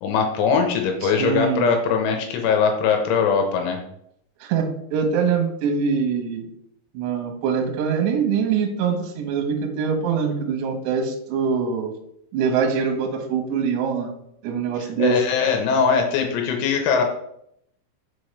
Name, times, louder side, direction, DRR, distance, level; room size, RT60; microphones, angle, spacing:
voice 1, 0.0-3.8 15.0-17.0, left 5 dB, 80° left, 4 dB, 3.0 m, -21 dB
voice 2, 1.0-1.7 4.4-6.5 6.9-11.9 12.3-14.1 14.4-15.1, right 6 dB, 75° right, 3 dB, 2.7 m, -23 dB
6.3 x 5.1 x 3.2 m, 0.73 s
omnidirectional pair, 5.8 m